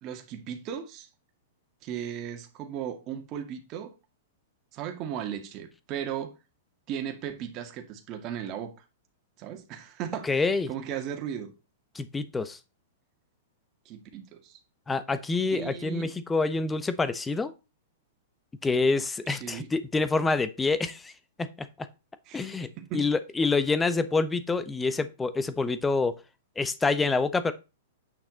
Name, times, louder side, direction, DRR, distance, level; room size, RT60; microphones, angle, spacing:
voice 1, 0.0-1.1 1.8-3.9 4.7-6.3 6.9-8.7 9.4-11.5 13.9-14.6 15.5-16.1 19.3-19.7 22.3-23.1, right 9 dB, 35° right, 1.9 m, -36 dB
voice 2, 10.2-10.7 11.9-12.6 14.9-17.5 18.6-21.1 21.4-21.9 22.3-22.7 22.9-26.1 26.6-27.5, left 3 dB, 10° left, 0.8 m, -27 dB
9.0 x 5.8 x 4.0 m
hypercardioid pair, 140°, 0 cm